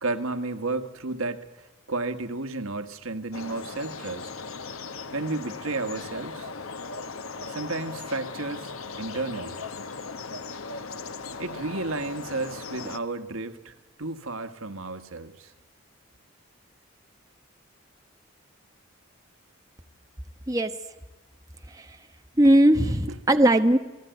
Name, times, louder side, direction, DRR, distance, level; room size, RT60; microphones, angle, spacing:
voice 1, 0.0-4.3 5.1-6.5 7.5-8.7 9.0-9.6 11.4-15.5, right 3 dB, 85° right, 8 dB, 1.7 m, -32 dB
sound 1, 3.3-13.0, left 4 dB, 80° left, 1.2 m, -38 dB
voice 2, 20.5-20.8 21.7-22.0 22.4-23.8, right 1 dB, 15° right, 6 dB, 1.1 m, -19 dB
28.5 x 18.0 x 9.3 m, 1.1 s
head